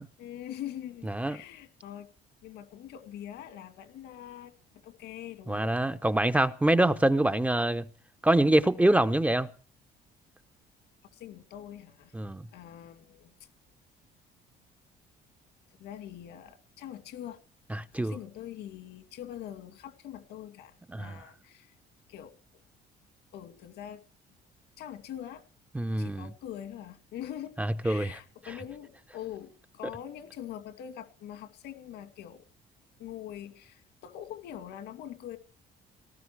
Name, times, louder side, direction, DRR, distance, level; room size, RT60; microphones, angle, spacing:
voice 1, 0.2-2.1 2.4-5.7 11.1-12.1 12.5-13.3 15.8-17.4 17.9-21.7 22.1-22.3 23.3-24.0 24.8-25.4 26.0-27.6 27.8-32.5 33.0-35.4, left 11 dB, 80° left, 2.5 m, -43 dB
voice 2, 1.1-1.4 5.5-7.9 8.2-9.5 12.1-12.5 17.7-18.1 20.9-21.2 25.7-26.2 27.6-28.1, right 1 dB, 10° right, 0.8 m, -25 dB
18.5 x 14.0 x 4.7 m
cardioid pair, 110°, 17 cm